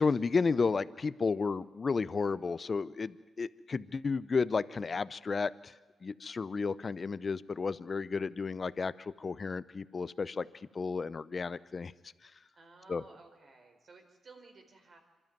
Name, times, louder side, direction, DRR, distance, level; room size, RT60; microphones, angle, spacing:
voice 1, 0.0-5.7 6.0-11.9 12.9-13.0, left 4 dB, 45° left, 16 dB, 0.7 m, -32 dB
voice 2, 12.5-15.0, right 3 dB, 55° right, 4 dB, 4.4 m, -56 dB
25.5 x 12.5 x 9.2 m, 1.3 s
supercardioid pair, 55°, 0 cm